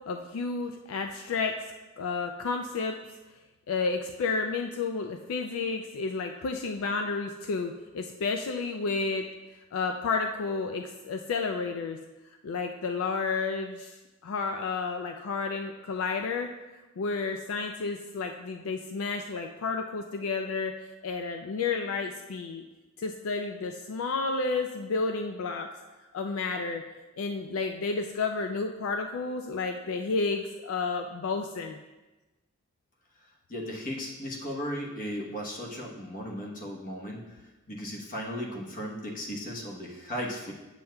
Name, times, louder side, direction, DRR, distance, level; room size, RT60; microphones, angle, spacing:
voice 1, 0.1-1.5 2.0-3.0 3.7-9.3 9.7-12.0 12.4-16.5 17.0-20.7 21.0-22.6 23.0-25.7 26.1-26.8 27.2-31.8, left 4 dB, 75° left, 5 dB, 0.4 m, -31 dB
voice 2, 33.5-37.3 37.7-40.5, equal, 40° left, -1 dB, 1.0 m, -36 dB
7.5 x 7.1 x 2.3 m, 1.1 s
head